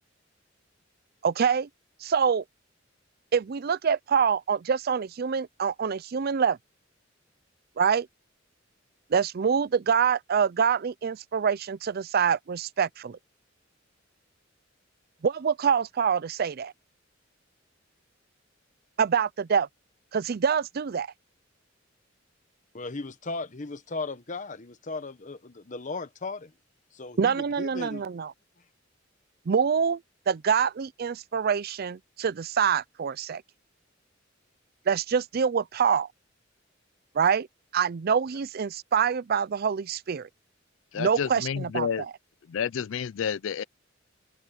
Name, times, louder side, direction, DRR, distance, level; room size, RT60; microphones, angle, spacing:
voice 1, 1.2-1.7 2.0-2.4 3.3-6.6 7.8-8.1 9.1-13.2 15.2-16.7 19.0-19.7 20.1-21.1 27.2-28.3 29.5-30.0 30.3-33.4 34.9-36.1 37.1-37.5 37.7-40.3 40.9-42.1, right 6 dB, 50° right, 0.4 m, -25 dB
voice 2, 22.7-26.5 26.9-28.0, left 3 dB, 40° left, 1.1 m, -36 dB
voice 3, 40.9-42.0 42.5-43.6, left 7 dB, 75° left, 0.4 m, -30 dB
head